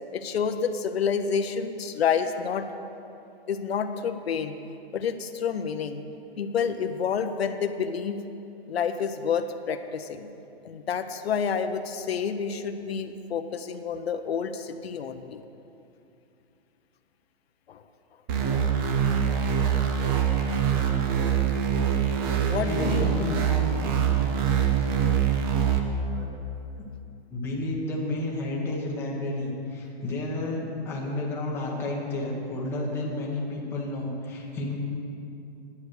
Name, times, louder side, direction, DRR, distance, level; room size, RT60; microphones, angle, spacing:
voice 1, 0.1-2.7 3.5-4.6 4.9-6.0 6.4-8.2 8.7-10.3 10.6-15.4 17.7-17.8 22.5-23.1, left 6 dB, 70° left, 8 dB, 0.8 m, -29 dB
sound 1, 18.3-25.8, right 8 dB, 20° right, 0.7 m, -24 dB
voice 2, 22.6-23.9 26.1-26.3 27.3-34.8, left 2 dB, 10° left, -4 dB, 1.2 m, -31 dB
10.5 x 9.5 x 6.6 m, 2.7 s
hypercardioid pair, 165°, 32 cm